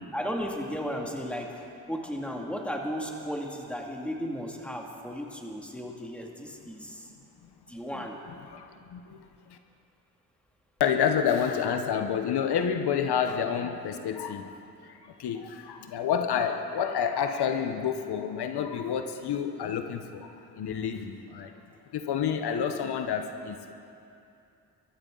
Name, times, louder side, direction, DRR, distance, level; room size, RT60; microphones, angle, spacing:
voice 1, 0.1-1.5 1.9-7.0 7.7-8.2, equal, 5° left, 0 dB, 2.3 m, -35 dB
voice 2, 8.5-9.2 9.5-9.6 10.8-14.5 14.9-21.5 21.9-23.7, left 7 dB, 80° left, 7 dB, 1.0 m, -29 dB
23.0 x 13.5 x 3.9 m, 2.7 s
cardioid pair, 75°, 39 cm